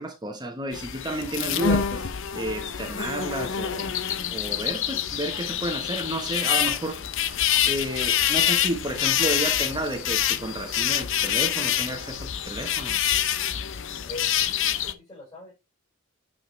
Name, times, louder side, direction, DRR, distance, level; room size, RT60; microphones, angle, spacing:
voice 1, 0.0-4.0 4.3-13.0, right 1 dB, 20° right, 1.1 m, -32 dB
sound 1, 0.7-14.9, left 10 dB, 60° left, 0.7 m, -26 dB
voice 2, 14.1-15.5, left 2 dB, 25° left, 5.1 m, -42 dB
8.6 x 5.0 x 3.2 m
head